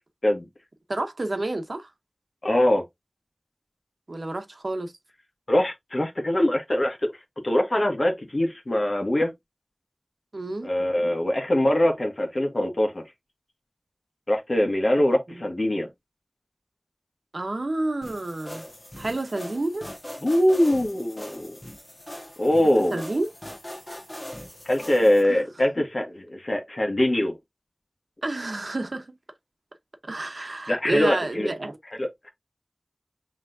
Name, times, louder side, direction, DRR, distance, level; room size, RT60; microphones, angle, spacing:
voice 1, 0.9-1.9 4.1-4.9 10.3-10.7 15.3-15.4 17.3-18.6 19.0-19.9 22.9-23.3 25.3-25.4 28.2-29.2 30.0-31.8, right 2 dB, 75° right, 0.9 m, -29 dB
voice 2, 2.4-2.8 5.5-7.1 7.4-9.3 10.6-13.0 14.3-15.9 20.2-21.6 22.4-23.0 24.6-27.3 30.7-31.5 32.0-32.3, left 1 dB, 60° left, 1.4 m, -23 dB
sound 1, 18.0-25.2, left 1 dB, 30° left, 1.4 m, -41 dB
5.8 x 3.1 x 2.6 m
wide cardioid pair, 45°, 0 cm